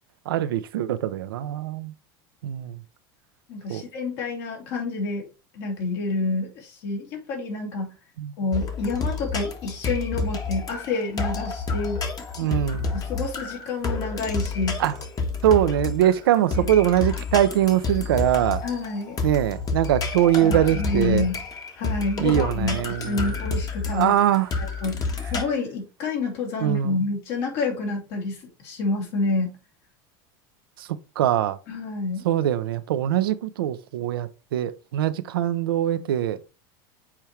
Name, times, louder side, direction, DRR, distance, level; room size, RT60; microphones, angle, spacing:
voice 1, 0.3-1.9 2.4-2.8 3.7-3.8 8.2-8.3 12.4-12.9 14.8-14.9 15.4-18.6 19.2-21.3 22.2-23.4 23.9-24.5 26.6-27.0 30.8-30.9 31.2-31.6 32.2-36.4, right 12 dB, 90° right, 0.7 m, -22 dB
voice 2, 3.5-5.3 5.5-7.9 8.4-12.0 12.4-12.5 12.9-14.8 16.5-16.7 18.6-19.2 20.4-21.4 21.8-24.2 24.6-29.6 31.7-32.3, left 3 dB, 65° left, 3.3 m, -28 dB
sound 1, 8.5-25.4, left 4 dB, 30° left, 1.4 m, -29 dB
7.3 x 4.5 x 3.2 m
supercardioid pair, 105°, 12 cm